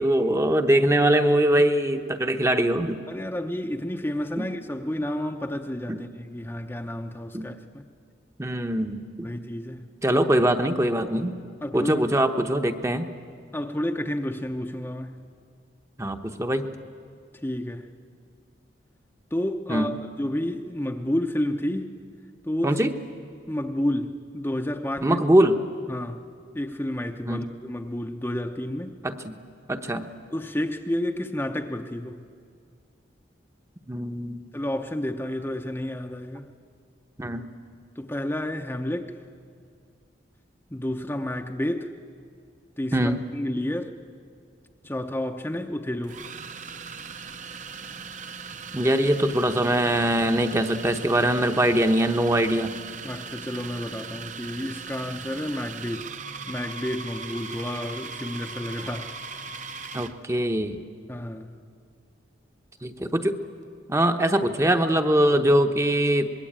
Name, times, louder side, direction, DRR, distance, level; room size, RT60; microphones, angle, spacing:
voice 1, 0.0-3.0 4.4-4.5 5.9-6.0 7.3-7.5 8.4-9.3 10.0-11.3 11.7-13.1 16.0-16.6 19.7-19.9 22.6-22.9 25.0-25.6 27.3-27.4 29.0-29.4 29.7-30.1 33.9-34.4 37.2-37.4 42.9-43.2 48.7-52.7 59.9-60.8 62.8-63.4 63.9-66.3, right 1 dB, 15° right, 7 dB, 0.9 m, -22 dB
voice 2, 3.1-7.8 9.2-9.9 10.1-10.2 11.6-12.1 13.5-15.2 17.3-17.9 19.3-22.0 22.4-22.8 23.5-25.2 25.9-26.2 26.5-28.9 30.3-32.2 34.5-36.5 38.0-39.2 40.7-41.9 42.8-43.9 44.8-46.3 53.0-56.1 56.5-59.2 61.1-61.6, left 1 dB, 10° left, 4 dB, 0.7 m, -30 dB
sound 1, 44.7-44.9 46.0-60.2, right 5 dB, 40° right, 0.8 m, -39 dB
25.5 x 21.0 x 8.7 m, 2.2 s
head